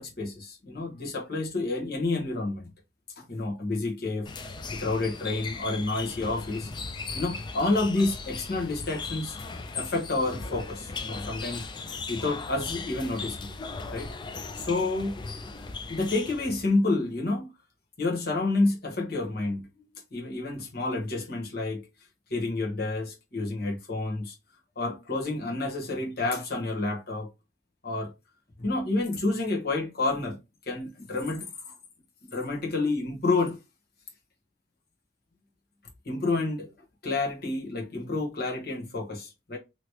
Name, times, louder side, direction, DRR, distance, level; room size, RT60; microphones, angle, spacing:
voice 1, 0.0-2.7 3.2-6.7 7.1-9.4 9.7-11.6 12.1-13.6 13.9-14.1 14.5-15.2 15.9-17.5 18.0-19.6 20.1-21.8 22.3-24.3 24.8-27.3 27.8-28.1 28.6-30.4 30.7-31.7 32.2-33.6 36.0-36.7 37.0-39.6, left 2 dB, 55° left, 1.2 m, -29 dB
sound 1, 4.3-16.7, left 4 dB, 25° left, 0.3 m, -38 dB
3.1 x 2.9 x 2.8 m
head